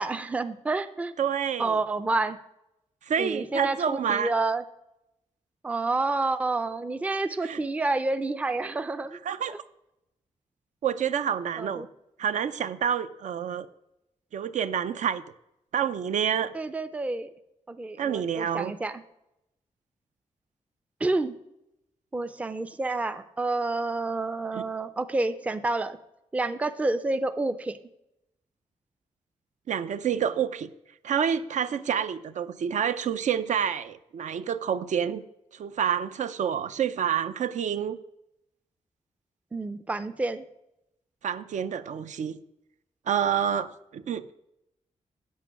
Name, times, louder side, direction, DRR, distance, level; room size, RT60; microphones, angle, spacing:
voice 1, 0.0-1.1 1.6-2.4 3.2-4.6 5.6-9.2 9.5-9.6 11.6-11.9 16.5-17.3 17.7-19.0 21.0-21.3 22.1-26.0 26.3-27.8 39.5-40.5, right 2 dB, 10° right, 11 dB, 0.4 m, -29 dB
voice 2, 1.2-1.8 3.1-4.3 7.4-7.6 9.2-9.6 10.8-11.9 12.2-13.7 14.3-15.2 15.7-16.5 18.0-18.7 24.5-24.6 29.7-30.7 31.0-35.2 35.5-38.0 41.2-42.4 43.1-44.3, right 8 dB, 70° right, 13 dB, 0.5 m, -28 dB
8.4 x 8.1 x 5.8 m, 0.87 s
wide cardioid pair, 160°, 13 cm